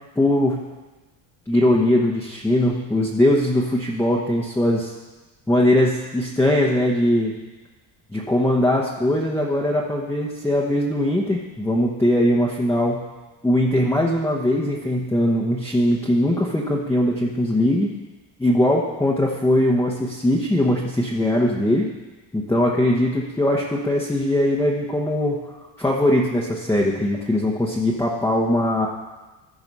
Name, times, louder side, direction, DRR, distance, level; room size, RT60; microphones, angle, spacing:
voice 1, 0.2-0.6 1.5-4.9 5.5-7.3 8.1-13.0 13.4-17.9 18.4-21.9 22.3-25.4 25.8-28.9, left 1 dB, 5° left, -2 dB, 1.0 m, -20 dB
14.0 x 4.8 x 5.5 m, 1.2 s
cardioid pair, 105°, 48 cm